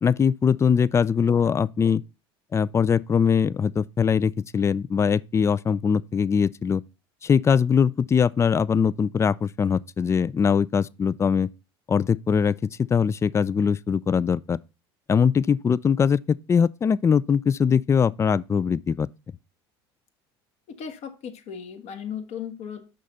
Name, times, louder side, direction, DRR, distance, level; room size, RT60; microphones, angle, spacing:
voice 1, 0.0-2.0 2.5-6.8 7.2-11.5 11.9-14.6 15.1-19.1, left 6 dB, 20° left, 0.3 m, -22 dB
voice 2, 20.7-22.8, left 7 dB, 55° left, 1.6 m, -36 dB
6.3 x 5.7 x 4.1 m
hypercardioid pair, 80°, 13 cm